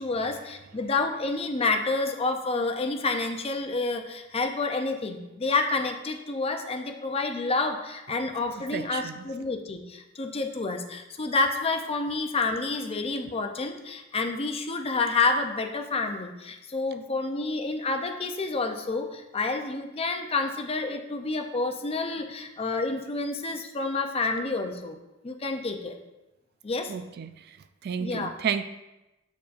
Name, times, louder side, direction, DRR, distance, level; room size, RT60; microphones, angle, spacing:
voice 1, 0.0-25.0 25.2-26.0 26.6-26.9 28.0-28.3, left 3 dB, 30° left, 5 dB, 0.6 m, -29 dB
voice 2, 8.7-9.3 26.9-27.6 27.8-28.6, right 7 dB, 50° right, 10 dB, 0.3 m, -32 dB
6.9 x 6.6 x 2.5 m, 0.99 s
head